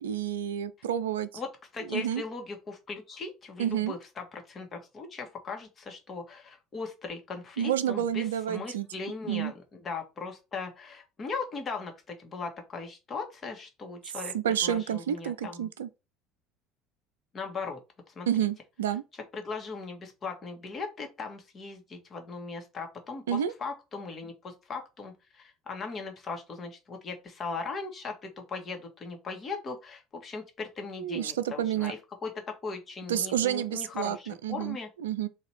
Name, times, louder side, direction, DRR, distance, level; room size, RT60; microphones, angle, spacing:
voice 1, 0.0-1.3 1.9-2.2 3.6-3.9 7.6-8.9 9.3-9.5 14.3-15.9 18.3-19.0 23.3-23.5 31.0-31.9 33.1-34.8 35.0-35.3, right 10 dB, 70° right, 0.4 m, -29 dB
voice 2, 1.3-15.7 17.3-17.8 18.1-18.3 19.3-34.9, left 4 dB, 30° left, 1.5 m, -39 dB
4.0 x 2.8 x 4.7 m
figure-of-eight pair, 65°, 0 cm